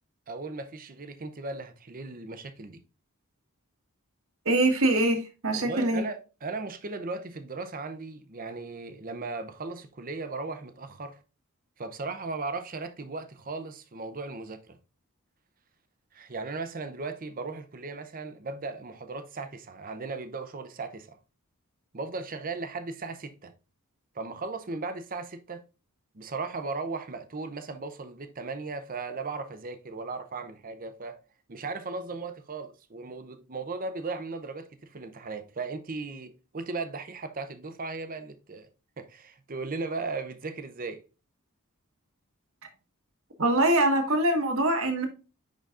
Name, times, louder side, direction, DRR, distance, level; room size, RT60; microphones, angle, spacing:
voice 1, 0.3-2.8 5.5-11.2 11.8-14.8 16.1-21.2 21.9-23.5 24.1-25.6 26.1-31.2 31.5-38.7 39.0-41.0, right 3 dB, 40° right, 0.7 m, -37 dB
voice 2, 4.4-6.0 43.4-45.1, right 1 dB, 65° right, 1.4 m, -23 dB
10.0 x 4.0 x 2.5 m
head